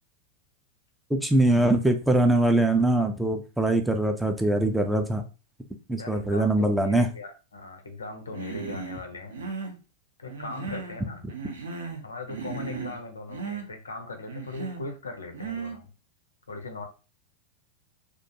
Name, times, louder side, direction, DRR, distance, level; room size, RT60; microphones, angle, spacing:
voice 1, 1.1-5.2 5.9-7.1, right 1 dB, 5° right, 5 dB, 0.3 m, -22 dB
voice 2, 6.0-9.5 10.2-11.3 12.0-15.9 16.5-16.8, left 3 dB, 75° left, 5 dB, 0.5 m, -39 dB
Human voice, 8.3-9.0 9.3-9.8 10.3-11.0 11.3-12.0 12.3-13.0 13.3-13.7 14.3-14.9 15.3-15.8, right 4 dB, 65° right, 0.5 m, -36 dB
2.4 x 2.1 x 2.7 m, 0.32 s
figure-of-eight pair, 90°, 0 cm